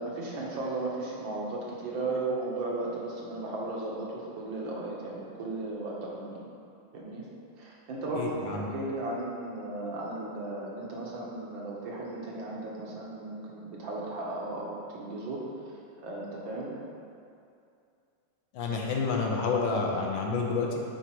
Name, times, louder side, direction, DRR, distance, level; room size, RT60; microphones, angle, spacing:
voice 1, 0.0-6.4 6.9-7.2 7.6-15.4 16.0-16.7, right 2 dB, 80° right, -4 dB, 1.7 m, -35 dB
voice 2, 8.2-8.7 18.5-20.8, left 4 dB, 80° left, 0 dB, 1.4 m, -29 dB
8.1 x 4.0 x 3.0 m, 2.5 s
omnidirectional pair, 2.1 m